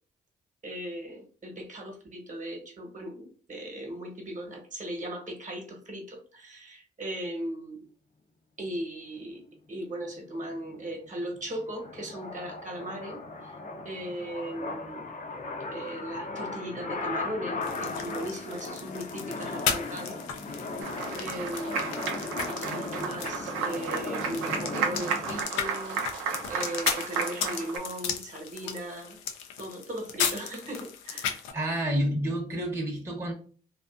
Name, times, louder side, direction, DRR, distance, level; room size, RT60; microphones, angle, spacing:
voice 1, 0.6-7.8 8.6-13.6 13.8-15.1 15.7-20.2 21.2-22.1 22.6-26.0 26.5-29.2 29.6-31.4, right 1 dB, 40° right, 1.0 m, -38 dB
sound 1, 10.1-25.4, left 3 dB, 40° left, 0.6 m, -37 dB
sound 2, 17.6-31.5, left 7 dB, 85° left, 0.4 m, -36 dB
Applause, 20.8-27.8, right 6 dB, 90° right, 0.5 m, -33 dB
voice 2, 31.5-33.3, equal, 15° right, 0.8 m, -29 dB
2.5 x 2.4 x 2.4 m
supercardioid pair, 50°, 20 cm